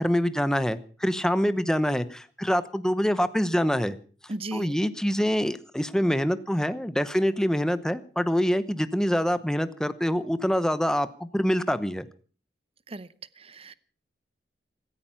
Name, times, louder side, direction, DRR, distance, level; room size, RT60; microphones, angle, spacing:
voice 1, 0.0-3.9 4.5-12.1, equal, 5° left, 13 dB, 0.9 m, -25 dB
voice 2, 4.3-4.7 12.9-13.1 13.4-13.7, right 2 dB, 35° right, 16 dB, 0.8 m, -36 dB
16.5 x 14.5 x 5.7 m, 0.41 s
head